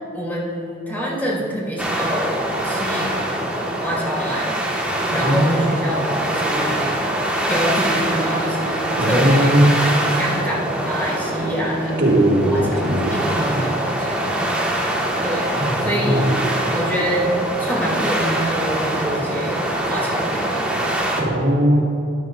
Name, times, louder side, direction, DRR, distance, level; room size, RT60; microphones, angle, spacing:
voice 1, 0.1-3.4 3.8-4.6 5.1-6.9 7.5-12.0 12.5-14.3 15.2-15.5 15.8-16.4 16.7-17.3 17.6-19.6 19.9-20.7, equal, 10° left, -5 dB, 2.7 m, -26 dB
sound 1, 1.8-21.2, right 1 dB, 5° right, 1.3 m, -23 dB
voice 2, 5.1-5.5 9.0-9.9 12.0-13.6 15.5-16.3 21.2-21.8, right 1 dB, 80° right, -4 dB, 2.8 m, -19 dB
13.5 x 12.0 x 2.4 m, 2.6 s
head